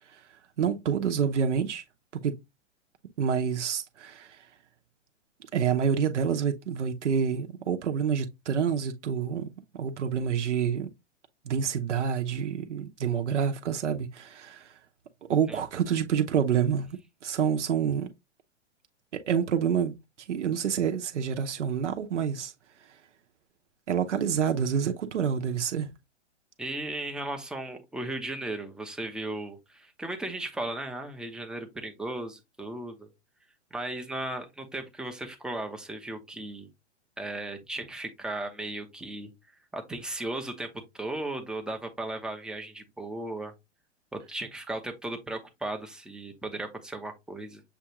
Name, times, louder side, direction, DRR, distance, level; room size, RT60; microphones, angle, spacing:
voice 1, 0.6-1.8 2.1-2.3 3.2-4.4 5.5-10.9 11.4-14.7 15.3-18.1 19.1-20.0 20.3-22.5 23.9-25.9, right 7 dB, 80° right, 0.8 m, -28 dB
voice 2, 26.6-33.1 33.7-36.7 37.2-39.3 39.7-43.5 44.1-47.6, right 2 dB, ahead, 0.5 m, -36 dB
6.8 x 2.4 x 2.9 m
hypercardioid pair, 120°, 36 cm